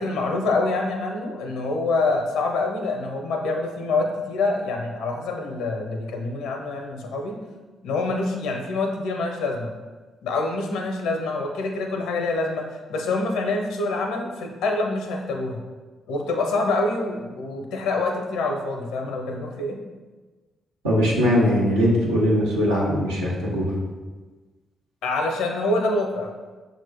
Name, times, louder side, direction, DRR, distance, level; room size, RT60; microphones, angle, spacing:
voice 1, 0.0-7.4 7.8-9.7 10.2-15.6 16.1-19.8 25.0-26.3, left 3 dB, 70° left, 3 dB, 0.5 m, -26 dB
voice 2, 20.8-23.6, equal, 85° right, -6 dB, 0.8 m, -20 dB
6.0 x 2.1 x 3.3 m, 1.3 s
hypercardioid pair, 40°, 0 cm